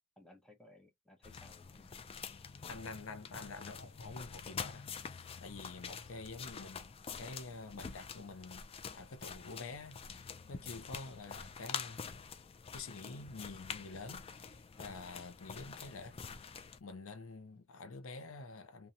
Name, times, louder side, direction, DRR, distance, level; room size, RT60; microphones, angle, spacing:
voice 1, 0.2-2.0 10.6-10.7, left 1 dB, 5° left, 0.7 m, -61 dB
Flip Flops On tiles, 1.2-16.8, left 6 dB, 30° left, 0.3 m, -47 dB
voice 2, 2.7-12.1 12.7-18.9, left 3 dB, 80° left, 0.6 m, -48 dB
2.8 x 2.2 x 2.5 m
head